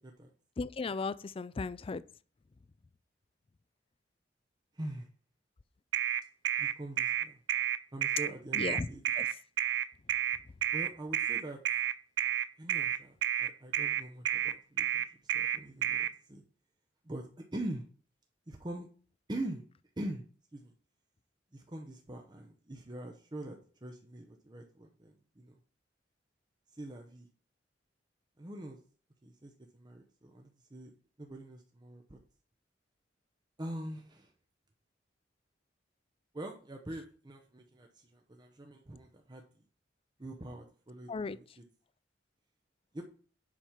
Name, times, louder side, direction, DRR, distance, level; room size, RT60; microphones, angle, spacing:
voice 1, 0.6-2.0 8.5-8.9 9.2-9.3 41.1-41.4, left 4 dB, 30° left, 0.4 m, -35 dB
voice 2, 4.7-5.1 6.6-7.4 7.9-9.0 10.7-11.6 12.6-16.4 17.0-17.8 18.5-18.9 19.3-19.6 20.0-20.2 20.5-20.7 21.5-25.6 26.7-27.3 28.4-28.8 29.2-30.9 31.2-32.2 33.6-34.3 36.3-39.4 40.2-41.6 42.9-43.0, right 1 dB, 25° right, 0.8 m, -43 dB
sound 1, 5.9-16.1, right 10 dB, 80° right, 0.5 m, -30 dB
7.4 x 5.1 x 5.8 m
head